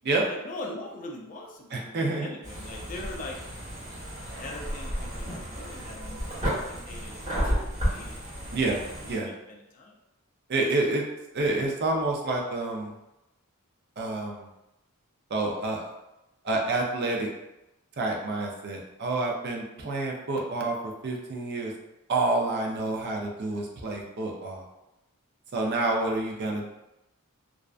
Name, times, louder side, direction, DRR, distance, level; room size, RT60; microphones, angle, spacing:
voice 1, 0.3-3.4 4.4-8.2 9.2-9.9, left 2 dB, 35° left, 0 dB, 0.3 m, -41 dB
voice 2, 1.7-2.3 8.5-8.8 9.1-9.3 10.5-11.0 11.3-12.9 14.0-14.5 15.3-15.8 16.4-17.3 18.0-20.8 21.0-21.7 22.1-24.6 25.5-26.7, right 2 dB, 45° right, 0 dB, 0.4 m, -28 dB
sound 1, 2.4-9.1, equal, 30° right, 1.3 m, -32 dB
2.5 x 2.1 x 2.4 m, 0.92 s
head